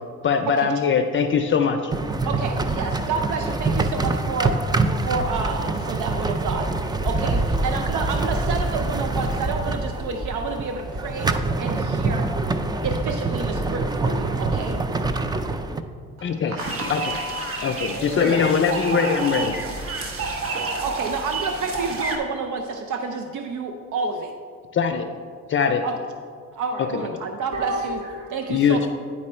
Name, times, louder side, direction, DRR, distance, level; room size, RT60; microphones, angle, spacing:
voice 1, 0.2-1.9 16.2-16.5 16.9-17.0 17.6-19.6 24.7-25.1 25.5-25.8 26.9-27.1 28.5-28.9, left 6 dB, 40° left, 7 dB, 0.5 m, -21 dB
sound 1, 1.9-15.8, right 3 dB, 15° right, 0.3 m, -25 dB
voice 2, 2.2-4.6 5.0-11.3 11.6-12.3 12.8-14.8 18.2-18.4 20.8-24.3 25.8-26.0 26.5-28.0 28.3-28.9, right 4 dB, 80° right, 5 dB, 0.6 m, -29 dB
voice 3, 16.2-18.4 27.5-28.3, equal, 65° right, -3 dB, 1.5 m, -33 dB
sound 2, 16.6-22.2, right 3 dB, 50° right, 1.1 m, -30 dB
9.8 x 4.3 x 4.3 m, 2.1 s
cardioid pair, 90°, 30 cm